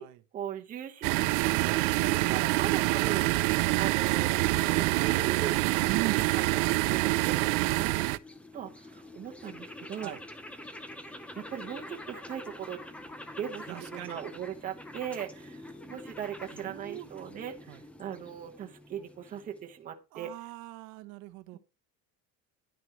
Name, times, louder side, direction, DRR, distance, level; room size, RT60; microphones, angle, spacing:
voice 1, 0.3-3.3 3.7-7.9 8.5-10.2 11.1-12.8 13.4-20.3, right 9 dB, 20° right, 1.1 m, -39 dB
sound 1, 1.0-8.2, right 20 dB, 85° right, 0.6 m, -26 dB
voice 2, 5.8-6.2 10.0-10.2 13.7-14.2 16.6-17.1 17.7-17.8 20.1-21.6, right 19 dB, 55° right, 0.9 m, -39 dB
sound 2, 6.6-19.8, left 1 dB, 5° left, 0.5 m, -47 dB
10.5 x 9.5 x 3.0 m
cardioid pair, 175°, 36 cm